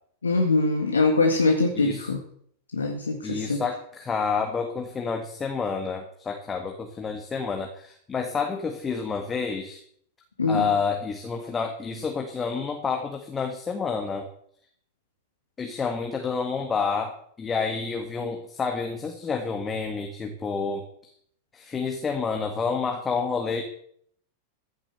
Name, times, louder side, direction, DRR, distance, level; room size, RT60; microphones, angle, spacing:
voice 1, 0.2-2.2 2.7-3.6 10.4-10.7, left 3 dB, 75° left, 2 dB, 1.9 m, -23 dB
voice 2, 3.2-9.8 10.5-14.2 15.6-21.1 21.5-23.6, left 5 dB, 20° left, 4 dB, 1.8 m, -29 dB
15.0 x 7.4 x 8.0 m, 0.64 s
figure-of-eight pair, 90°, 0 cm